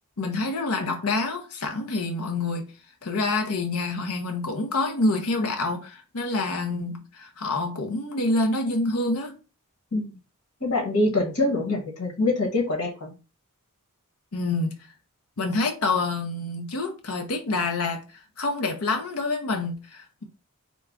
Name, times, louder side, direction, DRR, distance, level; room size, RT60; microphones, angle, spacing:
voice 1, 0.2-2.6 3.0-9.4 14.3-14.7 15.4-20.2, left 2 dB, 70° left, 0.7 m, -27 dB
voice 2, 10.6-13.1, left 2 dB, 90° left, 1.5 m, -25 dB
3.8 x 2.3 x 3.6 m
head